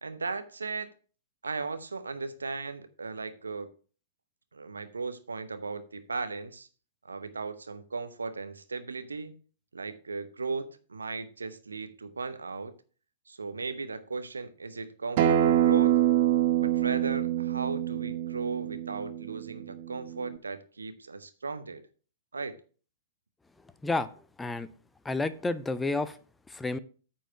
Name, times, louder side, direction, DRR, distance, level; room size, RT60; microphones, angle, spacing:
voice 1, 0.0-0.9 1.4-3.7 4.5-6.7 7.0-9.3 9.7-12.7 13.3-15.9 16.6-21.8 22.3-22.6, right 4 dB, 75° right, 0.9 m, -36 dB
Acoustic guitar, 15.2-20.4, right 11 dB, 50° right, 0.9 m, -26 dB
voice 2, 25.0-26.1 26.5-26.8, left 3 dB, 10° left, 0.5 m, -30 dB
8.9 x 4.6 x 5.9 m
figure-of-eight pair, 105°, 0 cm